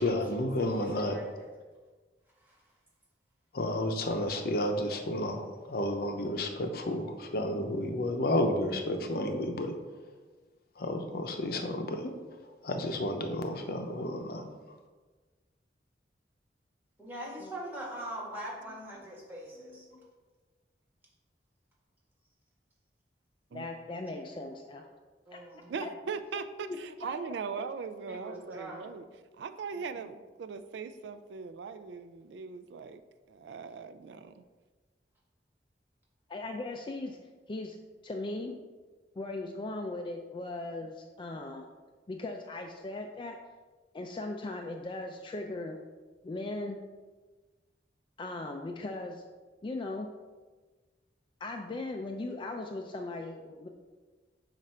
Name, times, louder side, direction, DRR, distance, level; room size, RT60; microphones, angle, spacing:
voice 1, 0.0-1.2 3.5-9.7 10.8-12.1 12.6-14.4, left 1 dB, 60° left, 5 dB, 0.6 m, -31 dB
voice 2, 0.6-1.5 2.4-2.7 17.0-19.9 25.3-25.8 28.1-28.9 29.7-30.2, right 1 dB, 10° right, -5 dB, 1.6 m, -43 dB
voice 3, 23.5-24.9 25.3-25.4 25.8-25.9 26.6-27.1 36.3-37.2 37.5-37.8 38.0-38.6 39.2-41.7 42.1-43.4 43.9-45.8 46.2-46.8 48.2-49.2 49.6-50.1 51.4-53.7, left 2 dB, 30° left, 3 dB, 0.3 m, -38 dB
voice 4, 25.7-29.1 29.4-33.0 33.3-34.4, right 5 dB, 80° right, 11 dB, 0.4 m, -40 dB
7.4 x 2.5 x 5.5 m, 1.3 s
head